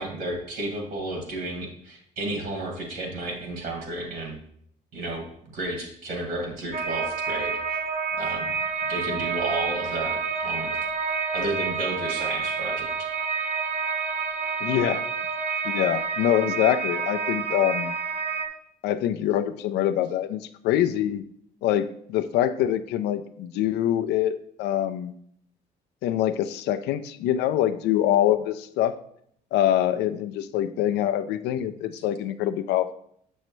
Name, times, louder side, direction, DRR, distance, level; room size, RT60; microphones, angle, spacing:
voice 1, 0.0-4.4 4.9-7.8 8.2-8.5 8.8-10.8 11.0-12.9, right 2 dB, 65° right, 1 dB, 2.1 m, -32 dB
sound 1, 6.7-18.5, right 5 dB, 40° right, 0.9 m, -28 dB
voice 2, 14.6-15.0 15.6-17.9 18.8-21.2 21.6-25.1 26.0-28.9 29.5-32.9, left 11 dB, 80° left, 10 dB, 0.5 m, -24 dB
6.5 x 6.3 x 3.1 m, 0.68 s
cardioid pair, 110°, 17 cm